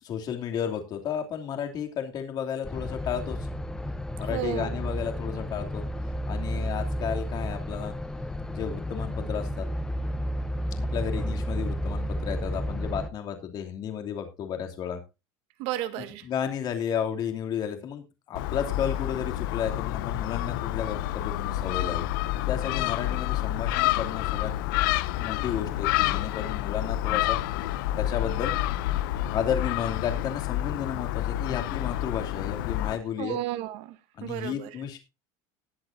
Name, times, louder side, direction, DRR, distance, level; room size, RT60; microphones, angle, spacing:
voice 1, 0.0-3.5 4.2-5.8 6.3-7.9 8.5-9.7 10.8-15.0 16.0-22.0 22.4-24.5 25.2-27.4 28.0-28.5 29.3-33.4 34.2-35.0, left 8 dB, 40° left, 2.9 m, -33 dB
sound 1, 2.6-13.1, equal, 5° left, 0.7 m, -32 dB
voice 2, 4.3-4.7 15.6-16.2 33.2-34.7, right 14 dB, 65° right, 1.8 m, -33 dB
Gull seagull, 18.3-32.9, left 14 dB, 85° left, 0.7 m, -28 dB
19.5 x 8.1 x 2.7 m
cardioid pair, 145°, 11 cm